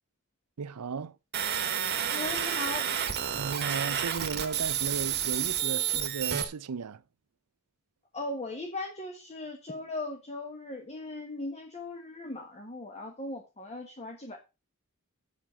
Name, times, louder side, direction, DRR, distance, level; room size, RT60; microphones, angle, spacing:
voice 1, 0.6-1.2 3.3-7.0, right 5 dB, 90° right, 0.6 m, -35 dB
sound 1, 1.3-6.4, right 9 dB, 50° right, 1.3 m, -30 dB
voice 2, 2.1-2.9 8.1-14.4, left 2 dB, 30° left, 1.3 m, -38 dB
7.6 x 7.3 x 5.0 m
head